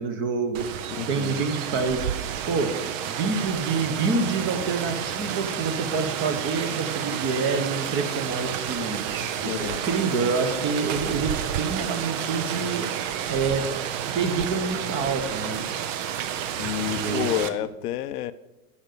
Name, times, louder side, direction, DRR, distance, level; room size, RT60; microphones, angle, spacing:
voice 1, 0.0-2.0 2.5-2.7 3.1-9.0 9.4-13.0 13.3-13.6 14.1-15.6 16.9-17.4, right 4 dB, 25° right, 1.0 m, -27 dB
Rain, 0.5-17.5, right 9 dB, 50° right, 0.8 m, -30 dB
voice 2, 1.0-1.5 9.2-9.8 16.6-18.3, left 12 dB, 65° left, 0.6 m, -30 dB
10.0 x 5.8 x 6.8 m
supercardioid pair, 150°, 49 cm